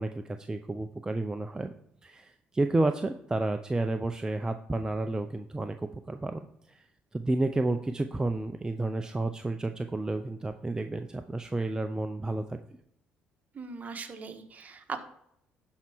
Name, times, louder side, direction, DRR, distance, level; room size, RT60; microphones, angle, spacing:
voice 1, 0.0-1.7 2.0-6.9 7.1-12.6, right 2 dB, 15° right, 7 dB, 0.6 m, -31 dB
voice 2, 13.5-15.0, right 5 dB, 40° right, 5 dB, 1.4 m, -39 dB
11.5 x 4.7 x 4.5 m, 0.75 s
supercardioid pair, 75°, 4 cm